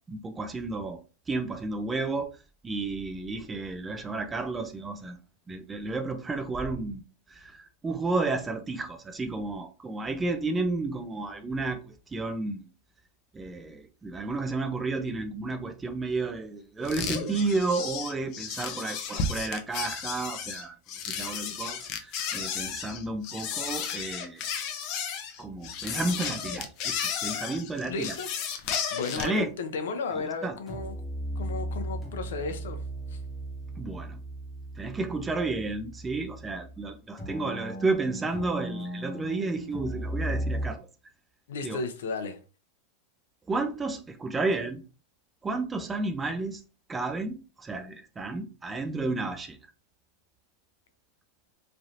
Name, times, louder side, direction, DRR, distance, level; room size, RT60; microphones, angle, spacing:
voice 1, 0.1-1.0 1.3-2.4 2.6-5.2 5.5-7.0 7.3-12.7 13.3-20.7 21.0-24.6 25.4-28.1 29.2-29.5 30.2-30.6 33.8-34.2 34.8-40.9 41.6-41.8 43.5-44.8 45.4-46.6 46.9-49.6, right 3 dB, 15° right, 0.4 m, -32 dB
sound 1, 16.8-29.4, left 7 dB, 45° left, 0.5 m, -33 dB
voice 2, 27.9-30.9 31.4-32.8 33.1-33.2 41.5-42.4, left 4 dB, 85° left, 0.6 m, -34 dB
sound 2, 30.3-30.4 30.7-36.9 37.2-40.7, right 1 dB, 10° left, 1.0 m, -36 dB
3.2 x 2.7 x 2.5 m
supercardioid pair, 140°, 0 cm